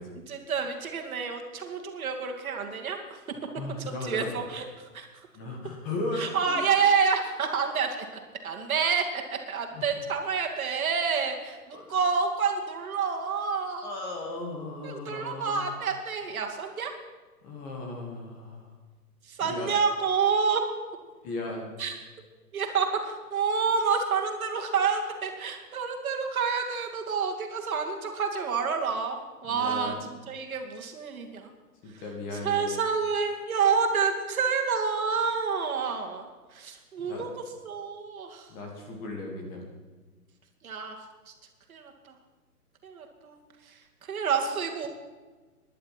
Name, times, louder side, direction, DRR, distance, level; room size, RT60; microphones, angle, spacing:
voice 1, 0.3-3.0 4.0-4.7 4.9-5.1 6.2-8.0 8.4-9.2 9.5-13.9 14.8-16.9 19.3-20.6 21.8-21.9 22.5-29.9 30.3-31.5 32.4-37.3 37.6-38.5 40.6-41.0 41.7-41.9 42.8-43.4 44.1-44.9, right 5 dB, 60° right, 3 dB, 2.5 m, -28 dB
voice 2, 3.5-4.4 5.3-6.6 9.7-9.9 11.7-11.8 13.8-15.7 17.4-18.7 19.4-19.7 21.2-21.8 29.4-30.0 31.8-32.8 37.0-37.3 38.5-39.7, left 2 dB, 20° left, 1 dB, 2.0 m, -36 dB
16.5 x 11.0 x 5.9 m, 1.3 s
hypercardioid pair, 160°, 46 cm